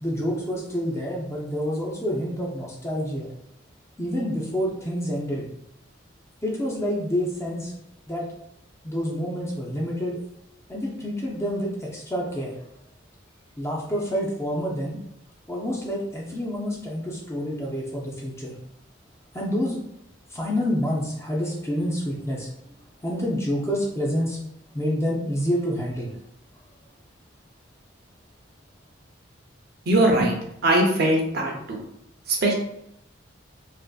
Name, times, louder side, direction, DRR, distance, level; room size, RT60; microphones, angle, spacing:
voice 1, 0.0-3.3 4.0-5.5 6.4-7.7 8.1-8.3 8.8-10.2 10.7-12.5 13.6-15.0 15.5-18.6 19.3-19.8 20.3-22.5 23.0-24.4 24.7-26.2, equal, 15° left, -3 dB, 0.4 m, -28 dB
voice 2, 29.9-30.3 30.6-31.8 32.4-32.5, right 1 dB, 55° right, 0 dB, 0.5 m, -20 dB
2.5 x 2.5 x 2.3 m, 0.77 s
head